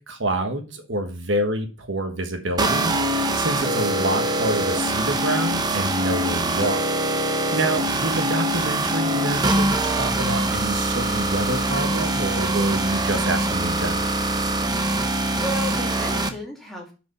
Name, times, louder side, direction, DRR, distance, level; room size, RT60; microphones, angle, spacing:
voice 1, 0.1-6.9 7.2-14.1, right 1 dB, 65° right, 5 dB, 1.3 m, -27 dB
sound 1, 2.6-16.3, right 2 dB, 20° right, 0.7 m, -23 dB
voice 2, 14.8-16.9, equal, ahead, -2 dB, 2.2 m, -35 dB
6.7 x 5.0 x 5.4 m, 0.32 s
head